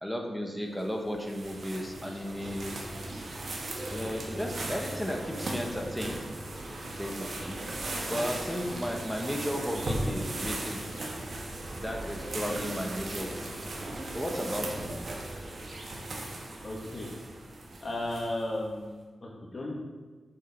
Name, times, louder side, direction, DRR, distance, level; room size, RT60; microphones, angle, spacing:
voice 1, 0.0-2.7 3.9-6.3 6.9-7.6 8.1-10.9 11.8-13.5 14.1-14.9, equal, 5° left, 1 dB, 1.4 m, -34 dB
sound 1, 0.8-18.6, right 1 dB, 70° right, 1.5 m, -37 dB
voice 2, 16.6-17.1 17.8-19.0 19.2-19.8, left 1 dB, 50° left, -3 dB, 2.1 m, -34 dB
6.5 x 6.5 x 4.6 m, 1.4 s
cardioid pair, 70°, 0 cm